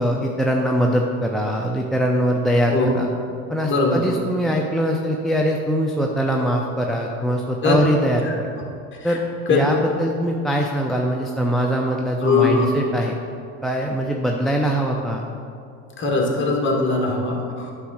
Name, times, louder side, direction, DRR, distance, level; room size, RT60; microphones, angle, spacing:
voice 1, 0.0-3.1 3.5-8.5 9.0-9.2 9.5-13.2 13.6-15.2, equal, ahead, -1 dB, 0.4 m, -22 dB
voice 2, 3.7-4.0 7.6-7.8 9.5-9.6 12.2-12.7 16.0-17.9, left 4 dB, 30° left, -1 dB, 1.8 m, -20 dB
9.3 x 3.6 x 6.3 m, 2.5 s
supercardioid pair, 105°, 39 cm